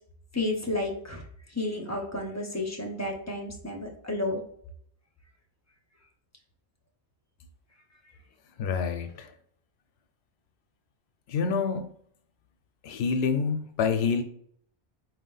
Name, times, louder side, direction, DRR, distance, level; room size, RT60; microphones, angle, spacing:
voice 1, 0.3-1.2 1.5-4.4, left 2 dB, 20° left, 0 dB, 0.6 m, -31 dB
voice 2, 8.6-9.3 11.3-11.8 12.8-14.2, left 5 dB, 70° left, 8 dB, 0.8 m, -27 dB
4.7 x 2.8 x 3.9 m, 0.64 s
omnidirectional pair, 1.2 m